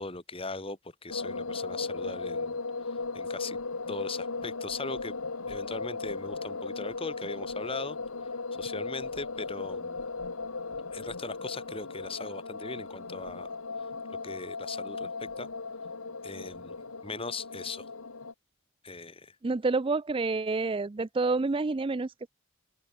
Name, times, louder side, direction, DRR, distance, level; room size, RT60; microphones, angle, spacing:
voice 1, 0.0-2.6 2.9-3.6 3.9-5.1 5.5-8.3 8.6-10.1 10.9-13.5 13.8-13.9 14.2-15.5 16.2-17.9 18.8-19.4, left 3 dB, 25° left, 2.6 m, -39 dB
sound 1, 1.1-18.3, left 3 dB, 90° left, 1.8 m, -37 dB
voice 2, 19.4-22.3, right 3 dB, 25° right, 0.4 m, -28 dB
open air
head